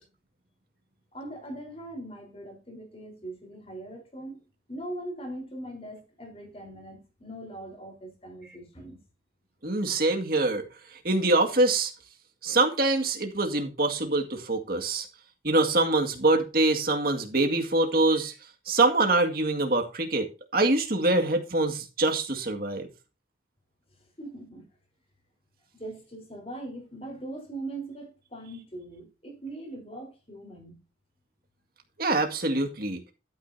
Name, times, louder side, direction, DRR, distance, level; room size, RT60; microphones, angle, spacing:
voice 1, 1.1-4.4 4.7-9.0 24.2-24.6 25.7-30.8, right 1 dB, 30° left, 4.1 m, -41 dB
voice 2, 9.6-10.7 10.9-11.9 12.4-15.1 15.4-18.3 18.7-20.3 20.5-22.9 32.0-33.0, right 2 dB, 50° right, 2.1 m, -24 dB
13.0 x 9.1 x 2.8 m
head